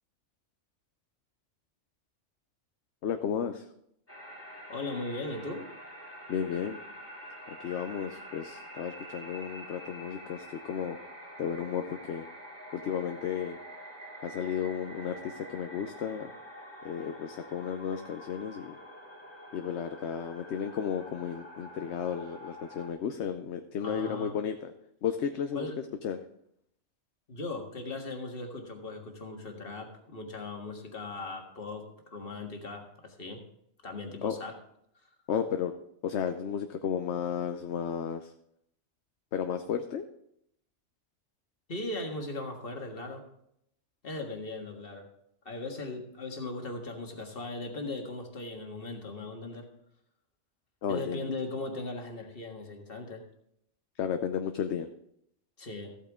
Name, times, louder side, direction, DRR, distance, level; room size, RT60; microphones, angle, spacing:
voice 1, 3.0-3.7 6.3-6.8 7.5-11.0 11.4-12.2 12.7-13.6 14.2-16.3 16.8-18.8 19.5-24.7 25.0-25.7 26.0-26.2 34.2-34.4 35.3-35.7 36.0-38.3 39.3-40.1 50.8-51.3 54.0-54.9, left 8 dB, 70° left, 7 dB, 0.9 m, -33 dB
sound 1, 4.1-22.9, equal, 10° left, 1.9 m, -47 dB
voice 2, 4.7-5.7 23.8-24.4 25.5-25.8 27.3-31.8 32.1-33.4 33.8-34.5 41.7-43.2 44.0-45.1 45.5-49.7 50.9-53.2 55.6-55.9, left 2 dB, 50° left, 3 dB, 1.8 m, -38 dB
14.5 x 8.5 x 3.6 m, 0.76 s
omnidirectional pair, 1.2 m